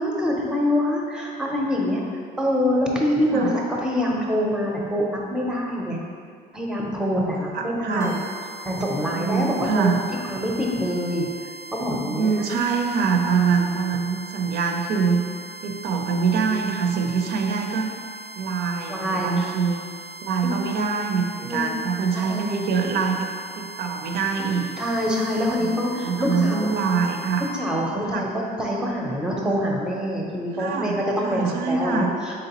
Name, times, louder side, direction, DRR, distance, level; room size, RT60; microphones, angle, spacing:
voice 1, 0.0-2.0 2.4-6.0 6.5-8.1 8.7-9.9 10.2-11.3 11.7-12.4 18.9-19.5 20.4-20.6 21.4-21.7 22.1-22.4 24.8-26.7 27.6-32.5, equal, 5° right, -2 dB, 0.5 m, -25 dB
voice 2, 7.5-8.1 9.2-10.0 12.1-15.2 15.6-17.9 18.4-19.8 20.2-23.3 23.6-24.7 25.6-27.5 28.1-28.2 30.6-32.1, right 5 dB, 70° right, 3 dB, 0.4 m, -24 dB
sound 1, 8.0-27.5, right 2 dB, 90° left, 0.6 m, -40 dB
3.8 x 3.3 x 2.9 m, 2.1 s
cardioid pair, 110°, 17 cm